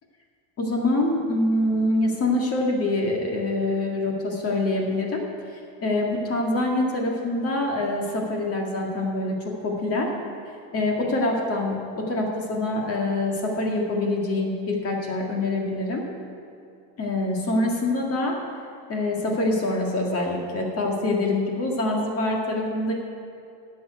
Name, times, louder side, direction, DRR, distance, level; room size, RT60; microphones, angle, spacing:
voice 1, 0.6-5.3 5.8-10.1 10.7-16.0 17.0-18.4 18.9-22.9, left 2 dB, 35° left, 0 dB, 1.9 m, -25 dB
11.5 x 6.3 x 9.2 m, 2.7 s
cardioid pair, 140°, 42 cm